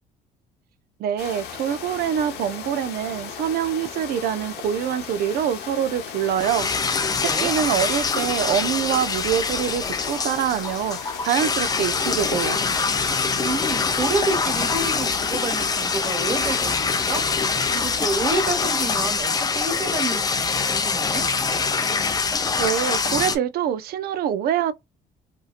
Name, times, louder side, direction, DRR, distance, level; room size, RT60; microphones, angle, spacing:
voice 1, 1.0-6.9 7.2-12.6 22.6-24.7, right 9 dB, 65° right, 0.5 m, -25 dB
sound 1, 1.2-19.1, left 8 dB, 75° left, 0.9 m, -37 dB
sound 2, 6.4-23.4, left 4 dB, 20° left, 0.5 m, -24 dB
voice 2, 7.1-7.5 13.4-17.2 17.7-21.3, right 3 dB, 25° right, 1.4 m, -29 dB
2.8 x 2.7 x 2.4 m
cardioid pair, 110°, 17 cm